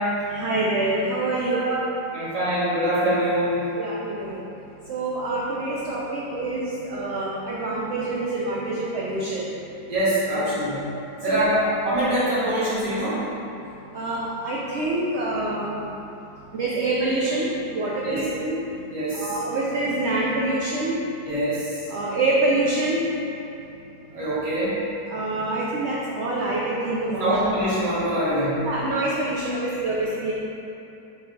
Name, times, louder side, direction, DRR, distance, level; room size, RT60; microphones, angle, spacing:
voice 1, 0.3-1.8 3.8-4.5 4.9-9.5 10.3-10.4 11.3-11.5 13.9-15.7 16.5-18.6 19.1-21.0 21.9-23.0 25.1-27.3 28.6-30.3, right 2 dB, 75° right, -5 dB, 0.6 m, -26 dB
voice 2, 2.1-3.7 9.9-10.8 11.2-13.2 18.0-18.2 18.9-19.4 21.2-21.8 24.1-24.8 27.2-28.7, right 1 dB, 25° right, -12 dB, 1.3 m, -24 dB
3.7 x 3.2 x 4.4 m, 2.8 s
omnidirectional pair, 1.8 m